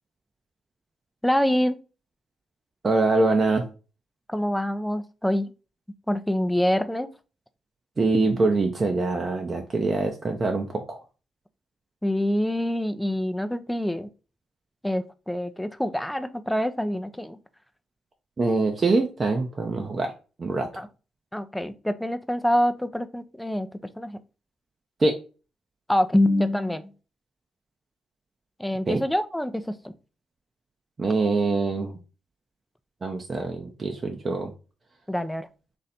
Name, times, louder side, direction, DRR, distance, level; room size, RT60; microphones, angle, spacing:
voice 1, 1.2-1.8 4.3-5.5 6.1-7.1 12.0-14.1 14.8-17.4 20.8-20.9 21.3-23.7 24.0-24.2 25.9-26.8 28.6-29.9 35.1-35.5, left 1 dB, 5° left, 0.5 m, -25 dB
voice 2, 2.8-3.7 8.0-11.0 18.4-20.1 20.4-20.7 25.0-25.1 28.9-29.0 31.0-32.0 33.0-34.5, right 3 dB, 40° right, 0.6 m, -24 dB
3.2 x 2.6 x 4.0 m
hypercardioid pair, 45°, 0 cm